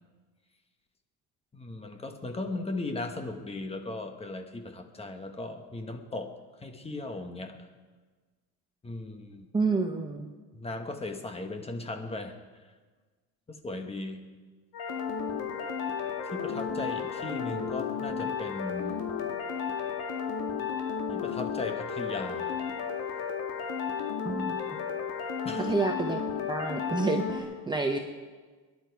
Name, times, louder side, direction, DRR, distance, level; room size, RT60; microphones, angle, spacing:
voice 1, 1.5-6.3 6.6-7.6 8.8-9.5 10.5-12.4 13.5-14.2 16.3-19.0 21.1-22.6 25.4-25.7, left 2 dB, 15° left, 6 dB, 1.2 m, -37 dB
voice 2, 9.5-10.3 24.2-24.6 25.6-26.2 26.5-28.0, right 3 dB, 10° right, 3 dB, 0.7 m, -29 dB
sound 1, 14.7-27.4, left 6 dB, 65° left, 2.4 m, -33 dB
22.5 x 11.0 x 4.7 m, 1.4 s
cardioid pair, 150°, 38 cm